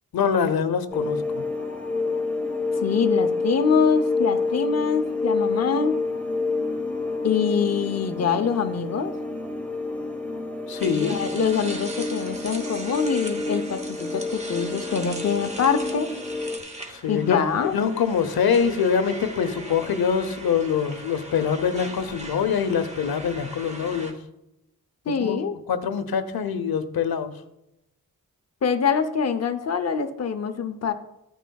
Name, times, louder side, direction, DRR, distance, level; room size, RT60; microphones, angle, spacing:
voice 1, 0.1-1.4 10.7-11.2 16.9-17.4 17.7-24.1 25.1-25.4 25.7-27.3, left 7 dB, 90° left, 11 dB, 0.8 m, -24 dB
sound 1, 0.9-16.6, left 3 dB, 5° left, 1.2 m, -28 dB
voice 2, 2.8-6.0 7.2-9.1 11.0-16.1 17.1-17.7 25.1-25.6 28.6-30.9, left 6 dB, 45° left, 8 dB, 0.7 m, -24 dB
sound 2, 10.8-24.1, right 1 dB, 20° right, 1.0 m, -40 dB
13.5 x 9.2 x 2.3 m, 0.87 s
wide cardioid pair, 170°, 35 cm